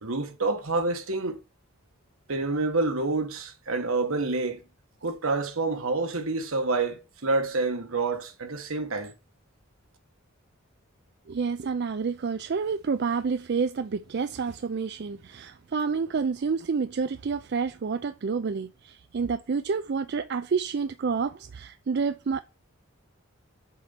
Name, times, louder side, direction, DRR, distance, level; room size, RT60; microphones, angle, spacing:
voice 1, 0.0-1.4 2.3-4.6 5.0-9.1, right 3 dB, 75° right, 1.4 m, -28 dB
voice 2, 11.3-22.4, right 5 dB, 50° right, 0.4 m, -29 dB
7.3 x 4.2 x 6.7 m
head